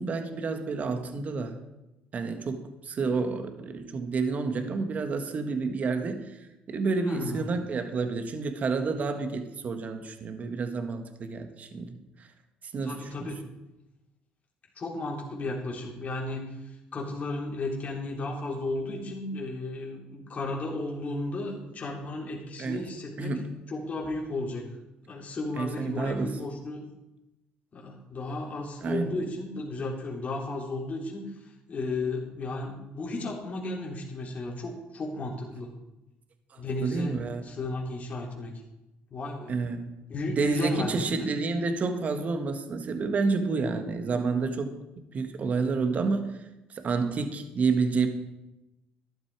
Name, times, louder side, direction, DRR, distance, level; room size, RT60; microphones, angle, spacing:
voice 1, 0.0-1.6 2.1-6.4 6.7-12.0 12.7-13.3 22.6-22.8 23.2-23.6 25.6-26.4 28.8-29.2 36.8-37.4 39.5-39.9 40.4-46.2 46.7-48.1, right 4 dB, 45° right, 7 dB, 1.7 m, -29 dB
voice 2, 7.0-7.5 12.8-13.4 14.7-23.4 23.7-24.6 25.0-26.8 27.7-31.3 31.7-35.7 36.6-38.5 39.1-39.6 40.1-41.3, left 2 dB, 45° left, -2 dB, 3.4 m, -34 dB
13.0 x 11.5 x 4.8 m, 0.95 s
supercardioid pair, 85°, 3 cm